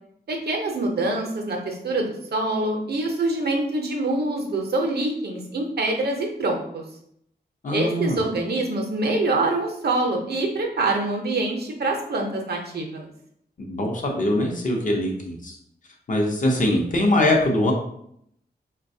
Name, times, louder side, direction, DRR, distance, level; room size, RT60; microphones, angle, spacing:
voice 1, 0.3-6.8 7.7-13.1, right 2 dB, 70° right, 2 dB, 0.6 m, -25 dB
voice 2, 7.6-8.2 13.6-15.6 16.1-17.7, left 1 dB, 50° left, 0 dB, 0.6 m, -22 dB
3.9 x 2.2 x 2.6 m, 0.71 s
wide cardioid pair, 125°, 17 cm